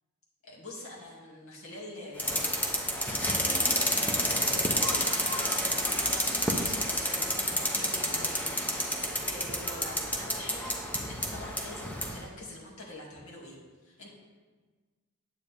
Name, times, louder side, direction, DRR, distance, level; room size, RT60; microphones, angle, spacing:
voice 1, 0.4-13.6 13.8-14.1, left 1 dB, 65° left, -4 dB, 2.3 m, -45 dB
sound 1, 2.2-12.2, equal, 5° left, 0.8 m, -29 dB
9.3 x 8.2 x 3.4 m, 1.4 s
head